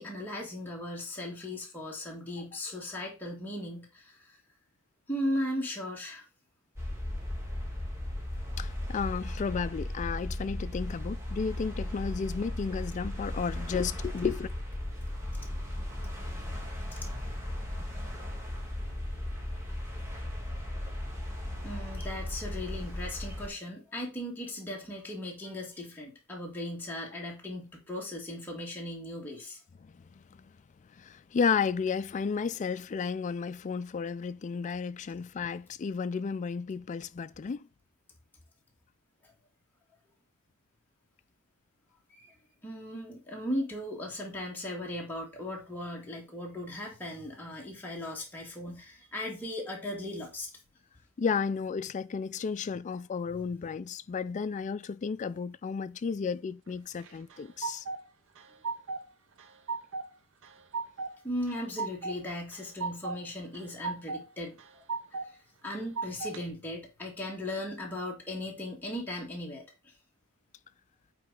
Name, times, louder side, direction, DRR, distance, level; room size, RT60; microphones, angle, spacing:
voice 1, 0.0-4.4 5.1-6.2 21.6-29.6 39.2-39.3 42.1-42.3 42.6-50.5 61.2-64.6 65.2-69.9, left 1 dB, 10° left, 1.5 m, -37 dB
sound 1, 6.8-23.5, left 1 dB, 15° right, 1.9 m, -36 dB
voice 2, 8.6-14.5 30.2-30.3 31.0-37.7 51.2-57.8, left 5 dB, 35° left, 0.3 m, -33 dB
sound 2, 57.0-58.0 58.4-59.1 59.4-60.1 60.4-61.1 61.5-62.2 62.5-63.2 63.5-64.2 64.6-65.3 65.7-66.4, right 4 dB, 65° right, 0.8 m, -36 dB
8.8 x 4.2 x 3.8 m
head